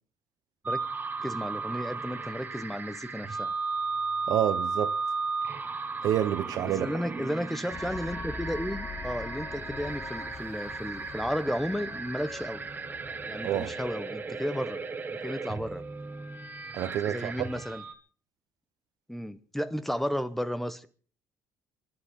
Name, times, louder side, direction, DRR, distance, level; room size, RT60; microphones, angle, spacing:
sound 1, 0.7-17.9, right 4 dB, 25° right, 1.8 m, -35 dB
voice 1, 1.2-3.5 6.8-12.6 13.2-14.9 15.2-15.9 17.0-17.8 19.1-20.9, equal, 5° left, 1.0 m, -33 dB
voice 2, 4.3-4.9 6.0-6.9 13.4-13.7 16.7-17.3, right 11 dB, 65° right, 1.1 m, -28 dB
sound 2, 7.7-15.7, left 3 dB, 35° left, 2.8 m, -43 dB
27.5 x 11.5 x 3.8 m
cardioid pair, 110°, 7 cm